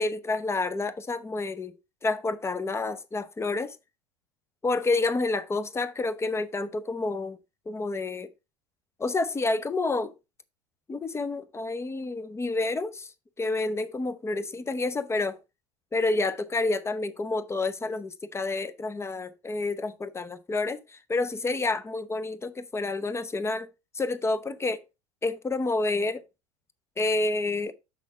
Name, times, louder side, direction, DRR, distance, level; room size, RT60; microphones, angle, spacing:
voice 1, 0.0-1.7 2.0-3.8 4.6-7.4 7.7-8.3 9.0-10.1 10.9-13.1 13.4-15.4 15.9-23.7 23.9-24.8 25.2-26.2 27.0-27.7, left 3 dB, 15° left, 0.7 m, -29 dB
6.2 x 5.6 x 4.0 m
hypercardioid pair, 80°, 19 cm